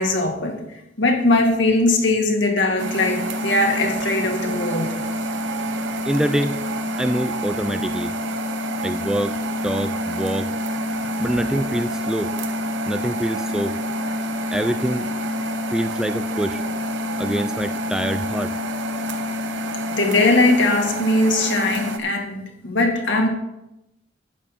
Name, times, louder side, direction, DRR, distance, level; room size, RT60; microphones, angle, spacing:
voice 1, 0.0-5.0 11.5-11.6 19.9-23.3, left 2 dB, 70° left, 2 dB, 2.2 m, -20 dB
sound 1, 2.8-22.0, equal, 85° right, 1.0 m, -27 dB
voice 2, 6.1-6.6 7.0-8.1 8.8-9.4 9.6-10.5 11.2-12.3 12.9-13.8 14.5-15.1 15.7-16.6 17.2-18.5, equal, 5° right, 11 dB, 0.3 m, -25 dB
12.0 x 8.7 x 4.4 m, 0.89 s
head